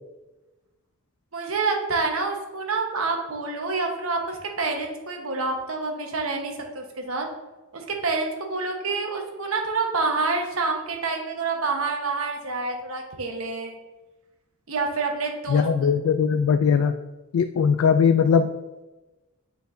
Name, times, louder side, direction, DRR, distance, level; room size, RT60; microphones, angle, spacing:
voice 1, 1.3-7.3 7.7-13.8 14.7-15.9, right 3 dB, 80° right, 2 dB, 1.1 m, -27 dB
voice 2, 15.5-16.9 17.3-18.5, left 6 dB, 80° left, 9 dB, 0.3 m, -20 dB
8.4 x 4.5 x 2.6 m, 1.1 s
head